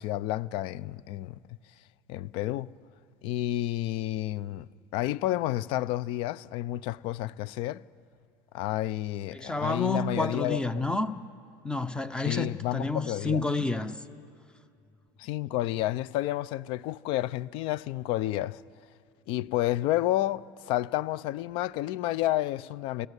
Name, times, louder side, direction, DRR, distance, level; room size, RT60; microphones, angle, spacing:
voice 1, 0.0-1.4 2.1-2.7 3.2-7.8 8.5-10.8 12.3-13.4 15.2-18.6 19.3-23.1, left 15 dB, 55° left, 0.6 m, -30 dB
voice 2, 9.3-11.1 11.6-14.0, left 3 dB, 10° left, 0.7 m, -29 dB
29.0 x 14.0 x 8.2 m
cardioid pair, 150°, 10 cm